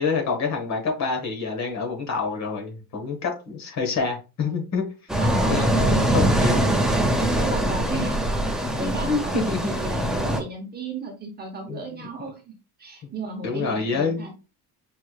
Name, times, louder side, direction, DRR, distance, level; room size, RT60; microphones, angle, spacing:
voice 1, 0.0-4.8 5.3-7.0 7.9-8.0 8.8-9.6 11.7-11.9 13.4-14.2, left 4 dB, 45° left, 1.2 m, -27 dB
sound 1, 5.1-10.4, right 1 dB, ahead, 0.3 m, -22 dB
voice 2, 5.2-6.0 6.4-6.5 6.8-8.2 8.8-12.4 12.8-14.3, right 2 dB, 25° right, 0.9 m, -34 dB
5.5 x 3.1 x 2.3 m
cardioid pair, 170°, 39 cm